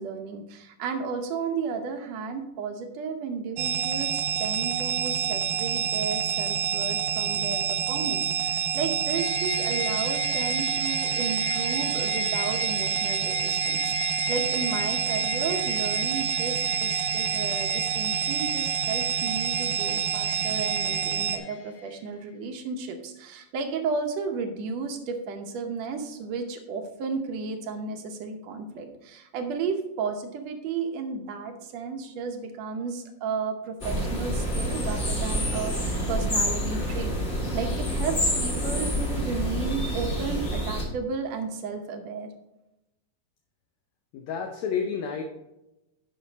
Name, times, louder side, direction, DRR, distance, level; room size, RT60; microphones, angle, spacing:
voice 1, 0.0-42.3, right 5 dB, 65° right, 5 dB, 1.8 m, -33 dB
sound 1, 3.6-21.4, right 9 dB, 85° right, 2.4 m, -27 dB
sound 2, 9.1-22.0, left 8 dB, 55° left, 1.8 m, -37 dB
sound 3, 33.8-40.8, equal, 35° left, 1.2 m, -28 dB
voice 2, 44.1-45.2, left 6 dB, 70° left, 2 dB, 1.8 m, -30 dB
11.0 x 5.6 x 4.1 m, 0.93 s
omnidirectional pair, 3.9 m